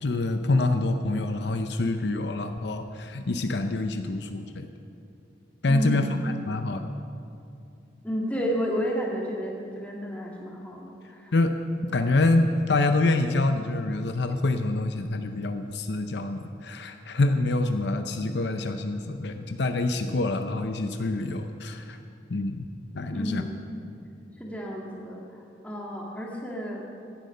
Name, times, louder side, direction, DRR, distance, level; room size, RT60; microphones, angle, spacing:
voice 1, 0.0-4.7 5.6-6.9 11.3-11.5 11.9-22.0 22.3-22.7 22.9-23.4, left 2 dB, 65° left, 7 dB, 0.6 m, -26 dB
voice 2, 5.7-6.2 8.0-11.3 23.1-23.6 24.4-25.2 25.6-26.8, equal, 10° left, -2 dB, 1.9 m, -31 dB
16.0 x 10.5 x 5.5 m, 2.5 s
head